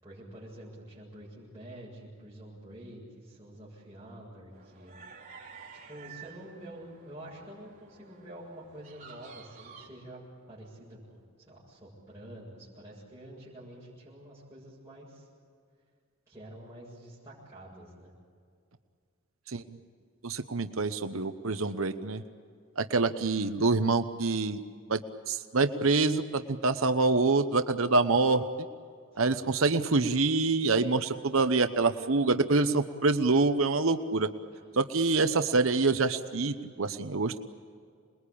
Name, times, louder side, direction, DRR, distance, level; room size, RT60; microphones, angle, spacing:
voice 1, 0.0-5.0 5.7-15.3 16.3-18.1 29.1-29.4 34.5-34.6, right 1 dB, 15° right, -9 dB, 7.3 m, -48 dB
sound 1, 4.5-9.9, right 6 dB, 35° right, 3.9 m, -51 dB
voice 2, 20.2-22.2 22.8-24.6 24.9-25.0 25.3-28.4 29.2-34.3 34.7-37.4, right 3 dB, 70° right, 8 dB, 1.0 m, -26 dB
28.0 x 21.5 x 8.6 m, 2.2 s
head